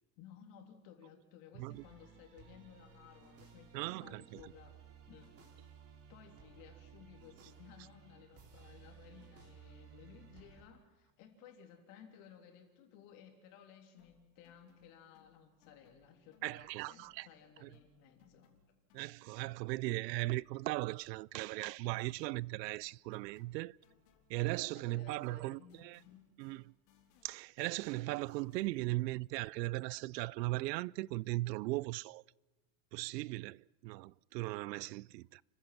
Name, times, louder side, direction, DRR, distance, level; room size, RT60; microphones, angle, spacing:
voice 1, 0.2-4.8 5.1-5.4 6.1-18.5 24.7-26.3, left 8 dB, 50° left, 3.4 m, -58 dB
sound 1, 1.7-10.6, right 6 dB, 30° right, 3.0 m, -58 dB
voice 2, 3.7-4.5 16.4-17.3 17.6-17.7 18.9-23.8 24.3-26.0 26.4-26.7 27.2-32.2 32.9-35.4, right 20 dB, 85° right, 0.5 m, -38 dB
sound 2, 14.0-17.4 17.7-25.0 25.2-29.0, left 7 dB, 70° left, 3.8 m, -71 dB
29.5 x 15.5 x 5.9 m
supercardioid pair, 160°, 49 cm